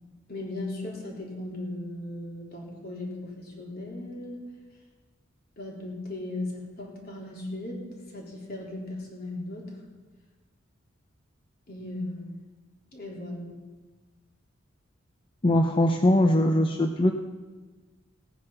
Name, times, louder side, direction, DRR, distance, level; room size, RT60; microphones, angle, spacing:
voice 1, 0.3-4.4 5.6-7.8 8.1-9.7 11.7-12.4 12.9-13.5, left 2 dB, 50° left, -2 dB, 3.7 m, -37 dB
voice 2, 15.4-17.1, left 1 dB, 25° left, 4 dB, 0.7 m, -21 dB
18.0 x 9.3 x 5.7 m, 1.3 s
head